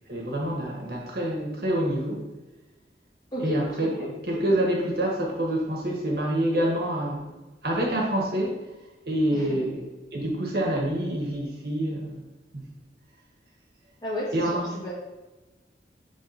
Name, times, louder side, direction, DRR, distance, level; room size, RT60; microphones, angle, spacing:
voice 1, 0.1-2.2 3.4-3.9 4.2-7.3 7.6-8.6 9.1-9.9 10.1-12.2 12.5-12.7 14.3-14.6, right 1 dB, 55° right, -1 dB, 1.6 m, -26 dB
voice 2, 3.3-4.1 9.3-9.6 14.0-14.9, left 1 dB, 20° left, -6 dB, 1.9 m, -33 dB
7.4 x 3.6 x 4.2 m, 1.1 s
head